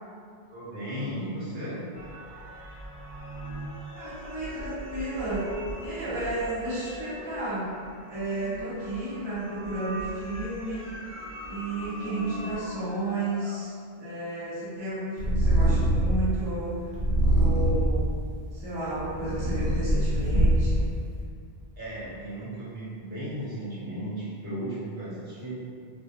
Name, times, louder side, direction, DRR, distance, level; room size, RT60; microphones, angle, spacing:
voice 1, 0.5-1.8 21.8-25.6, right 1 dB, 50° right, -11 dB, 1.0 m, -35 dB
sound 1, 1.9-12.6, right 1 dB, 30° left, 0.6 m, -41 dB
voice 2, 3.9-5.5 5.8-7.7 8.1-10.9 11.5-13.7 14.0-16.8 17.3-18.1 18.5-20.9, right 2 dB, 35° right, -10 dB, 0.5 m, -32 dB
sound 2, 10.6-13.6 16.9-17.0 19.1-19.2 25.4-25.5, left 1 dB, 10° left, 0.9 m, -43 dB
Purr, 15.2-16.3 16.9-18.0 18.7-20.8, equal, 75° right, 0.8 m, -23 dB
2.2 x 2.2 x 2.7 m, 2.2 s
omnidirectional pair, 1.1 m